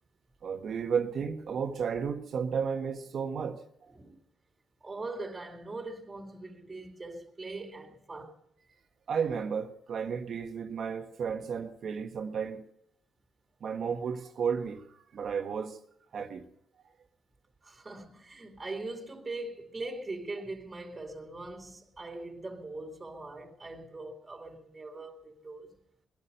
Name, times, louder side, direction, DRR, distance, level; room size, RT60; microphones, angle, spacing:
voice 1, 0.4-3.6 9.1-12.6 13.6-14.9 15.1-15.8 16.1-16.5, right 6 dB, 60° right, 1.4 m, -33 dB
voice 2, 4.8-8.4 17.6-25.7, right 2 dB, 20° right, 2.4 m, -41 dB
21.0 x 11.5 x 5.5 m
cardioid pair, 90°, 0 cm